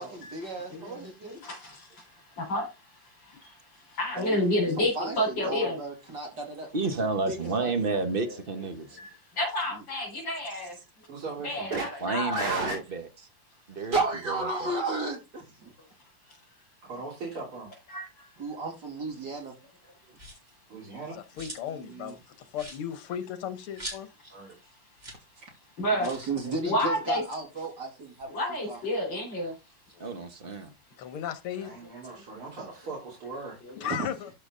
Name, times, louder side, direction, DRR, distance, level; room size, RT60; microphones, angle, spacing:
voice 1, 0.1-1.4 3.4-3.5 4.2-6.7 7.3-7.8 9.7-9.8 13.9-15.7 18.4-19.5 21.6-22.2 26.0-28.3 28.7-28.8 33.8-34.1, right 3 dB, 50° right, 3.4 m, -34 dB
voice 2, 0.8-1.6 2.4-2.6 4.0-5.8 9.0-9.1 9.4-10.7 11.4-12.5 17.9-18.0 25.8-26.1 26.7-27.2 28.3-29.5 33.6-33.7, left 1 dB, 55° left, 4.6 m, -29 dB
voice 3, 6.7-9.0 12.0-13.1 13.7-14.0 14.2-14.7 30.0-30.7, right 3 dB, 35° right, 1.0 m, -31 dB
voice 4, 11.1-12.1 12.3-12.8 16.9-17.7 20.7-21.2 24.3-24.6 31.6-33.6, right 3 dB, 75° right, 4.1 m, -36 dB
sound 1, 20.1-20.6 21.0-21.8 22.1-22.2 22.5-24.4 24.7-24.8 25.0-25.3 25.5-25.6 26.0-26.3 27.1-28.8 29.2-30.7, right 1 dB, 20° right, 3.2 m, -45 dB
voice 5, 21.1-24.1 30.0-30.1 31.0-31.7 33.8-34.3, left 9 dB, 80° left, 2.0 m, -36 dB
12.5 x 5.5 x 3.8 m
omnidirectional pair, 2.4 m